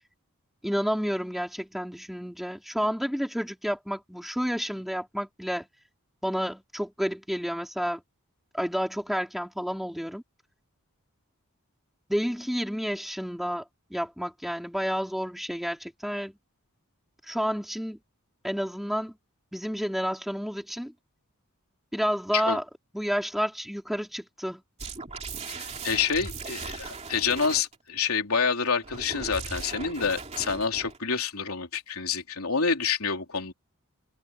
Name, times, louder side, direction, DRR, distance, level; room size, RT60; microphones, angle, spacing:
voice 1, 0.6-5.7 6.2-8.0 8.5-10.2 12.1-16.3 17.2-18.0 18.4-19.1 19.5-20.9 21.9-22.6 22.9-24.6, equal, ahead, 4.1 m, -30 dB
sound 1, 24.8-27.8 28.8-31.0, right 4 dB, 30° right, 2.9 m, -38 dB
voice 2, 25.5-33.5, left 5 dB, 80° left, 3.5 m, -28 dB
head